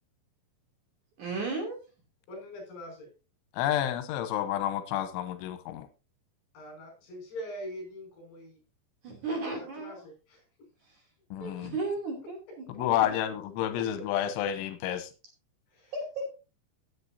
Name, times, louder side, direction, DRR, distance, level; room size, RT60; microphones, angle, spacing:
voice 1, 1.2-1.8 9.0-10.0 11.4-12.9 15.9-16.2, right 3 dB, 45° right, 1 dB, 3.9 m, -34 dB
voice 2, 2.3-3.1 6.5-8.6 9.5-10.4 15.7-15.9, equal, 65° left, 2 dB, 7.7 m, -43 dB
voice 3, 3.5-5.9 11.3-11.7 12.8-15.1, left 11 dB, 85° left, 10 dB, 3.4 m, -30 dB
16.0 x 8.5 x 2.7 m, 0.31 s
omnidirectional pair, 5.3 m